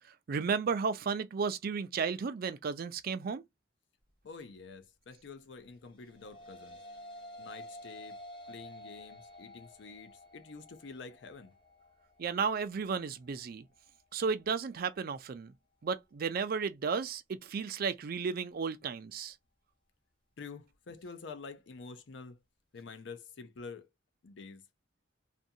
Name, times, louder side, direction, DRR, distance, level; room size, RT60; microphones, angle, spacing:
voice 1, 0.3-3.4 12.2-13.6 14.1-15.5 15.8-19.3, right 5 dB, 55° right, 0.4 m, -33 dB
voice 2, 4.2-6.8 7.4-8.2 8.5-11.5 20.4-22.4 22.7-23.9 24.2-24.6, left 4 dB, 70° left, 0.5 m, -48 dB
sound 1, 5.9-15.0, left 1 dB, 30° left, 0.9 m, -51 dB
2.5 x 2.3 x 2.7 m
head